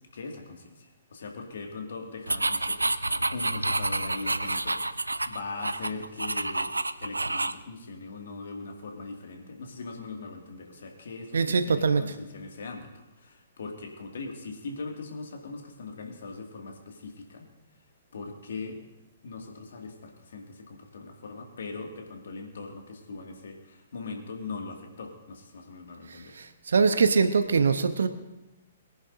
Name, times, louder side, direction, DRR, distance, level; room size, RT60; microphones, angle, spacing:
voice 1, 0.1-5.0 5.3-17.5 18.1-18.8 19.2-26.4, left 3 dB, 65° left, 2 dB, 2.2 m, -40 dB
sound 1, 2.3-7.6, right 2 dB, 85° right, 0.4 m, -29 dB
voice 2, 11.3-12.0 26.4-28.1, right 5 dB, 70° right, 10 dB, 0.9 m, -23 dB
22.5 x 10.5 x 2.7 m, 1.0 s
figure-of-eight pair, 120°, 0 cm